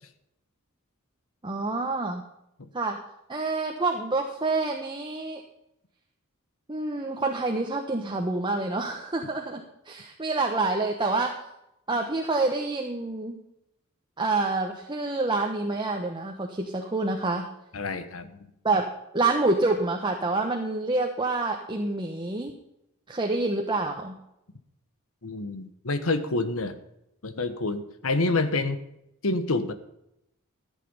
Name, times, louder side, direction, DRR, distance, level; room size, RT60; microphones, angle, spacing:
voice 1, 1.4-2.2 2.7-3.0 3.3-5.4 6.7-11.4 11.9-13.4 14.2-17.5 18.6-22.5 23.1-24.2, right 3 dB, 20° right, 2 dB, 1.1 m, -27 dB
voice 2, 17.7-18.5 25.2-26.8 27.2-28.8 29.2-29.7, left 2 dB, 70° left, 11 dB, 1.2 m, -27 dB
14.0 x 8.5 x 5.5 m, 0.83 s
head